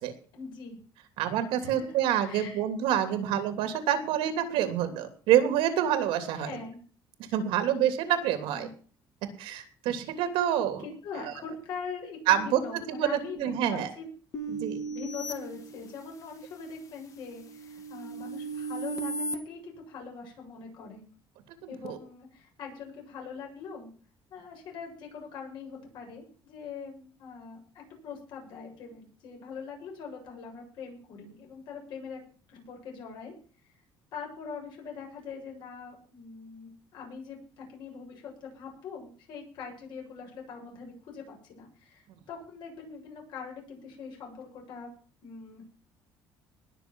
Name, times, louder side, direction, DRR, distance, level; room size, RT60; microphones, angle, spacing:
voice 1, 0.3-0.8 1.6-2.0 2.3-2.6 3.1-3.3 6.4-6.8 8.5-8.7 10.8-14.1 14.9-21.1 21.7-23.9 24.3-32.2 32.5-33.3 34.1-44.9 45.2-45.8, left 5 dB, 60° left, 0 dB, 7.6 m, -42 dB
voice 2, 1.2-6.5 7.3-8.7 9.4-10.8 11.2-11.3 12.3-13.9 14.5-14.8 21.6-22.0, right 10 dB, 85° right, 8 dB, 2.9 m, -27 dB
sound 1, 14.3-16.3 16.8-19.4, right 2 dB, 40° left, 1.9 m, -37 dB
20.0 x 7.1 x 6.3 m, 0.41 s
cardioid pair, 160°, 9 cm